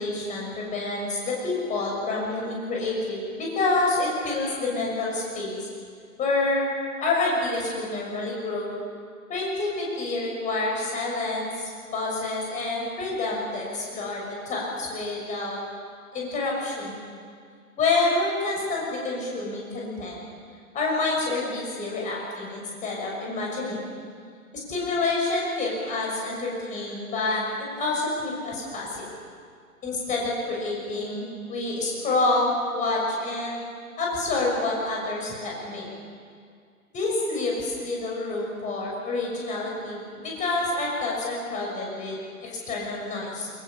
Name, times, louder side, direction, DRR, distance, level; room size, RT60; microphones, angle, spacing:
voice 1, 0.0-5.7 6.2-6.7 7.0-8.7 9.3-15.6 16.1-17.0 17.8-20.2 20.7-23.9 24.7-29.1 29.8-33.6 34.0-35.9 36.9-43.5, left 2 dB, 15° left, -2 dB, 6.5 m, -28 dB
23.5 x 23.0 x 7.4 m, 2.1 s
figure-of-eight pair, 125°, 45 cm